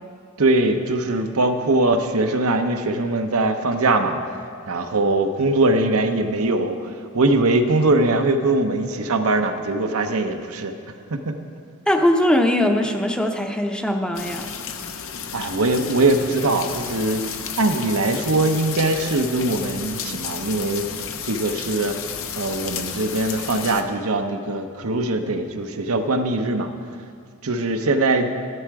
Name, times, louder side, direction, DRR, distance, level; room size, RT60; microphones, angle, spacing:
voice 1, 0.4-4.2 4.7-10.7 11.1-11.4 15.3-20.9 21.2-22.0 22.3-26.7 27.4-28.3, right 2 dB, 90° right, 6 dB, 0.9 m, -21 dB
voice 2, 11.9-14.6, left 1 dB, 5° left, 4 dB, 0.6 m, -20 dB
sound 1, 14.1-23.8, left 7 dB, 70° left, 0.8 m, -32 dB
12.5 x 11.0 x 4.8 m, 2.2 s
head